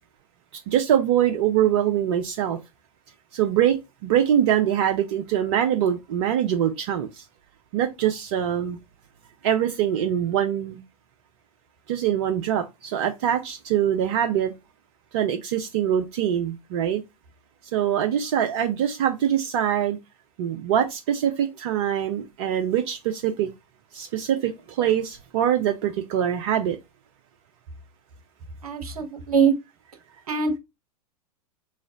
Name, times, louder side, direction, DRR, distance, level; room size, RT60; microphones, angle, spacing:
voice 1, 0.7-2.6 3.3-3.8 4.0-7.2 7.7-8.8 9.4-10.8 11.9-14.5 15.1-17.0 17.7-20.0 20.4-23.5 23.9-26.8, right 10 dB, 45° right, 0.6 m, -23 dB
voice 2, 28.6-29.5 30.3-30.6, right 6 dB, 70° right, 1.0 m, -22 dB
3.1 x 2.5 x 3.7 m
figure-of-eight pair, 100°, 19 cm